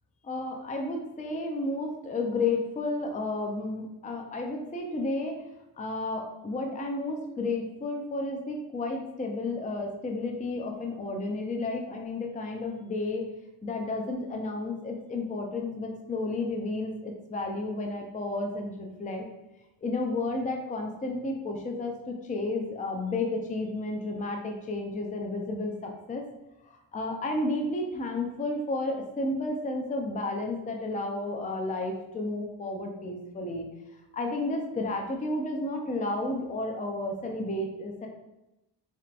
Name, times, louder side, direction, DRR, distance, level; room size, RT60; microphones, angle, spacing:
voice 1, 0.2-5.4 5.8-13.2 13.6-19.3 19.8-26.2 26.9-33.7 34.1-38.1, left 2 dB, 15° left, 2 dB, 0.5 m, -32 dB
4.2 x 3.3 x 2.5 m, 0.94 s
cardioid pair, 65°, 46 cm